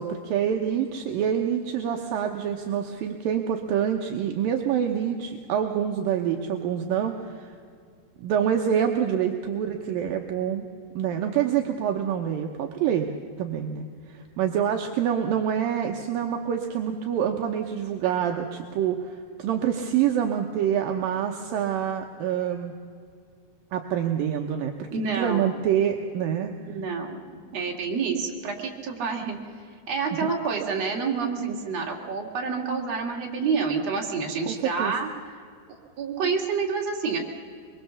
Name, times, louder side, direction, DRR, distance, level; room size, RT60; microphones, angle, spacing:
voice 1, 0.0-7.6 8.2-10.7 11.0-13.1 13.4-22.7 23.7-24.9 25.2-26.5 34.5-34.9, right 9 dB, 70° right, 3 dB, 2.3 m, -26 dB
voice 2, 24.9-25.5 26.7-27.2 27.5-29.4 29.9-35.4 36.0-37.2, right 5 dB, 40° right, 0 dB, 3.1 m, -28 dB
24.0 x 22.5 x 7.1 m, 2.2 s
omnidirectional pair, 5.1 m